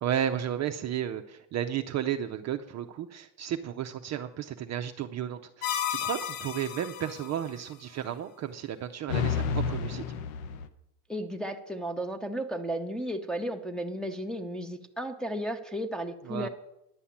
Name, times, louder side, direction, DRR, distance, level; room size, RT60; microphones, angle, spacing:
voice 1, 0.0-10.0 16.3-16.5, right 10 dB, 40° right, 6 dB, 0.5 m, -33 dB
sound 1, 5.6-7.3 9.1-10.7, left 7 dB, 90° left, 1.0 m, -31 dB
voice 2, 11.1-16.5, equal, ahead, 2 dB, 0.8 m, -34 dB
10.5 x 5.6 x 8.6 m, 0.84 s
cardioid pair, 125°, 44 cm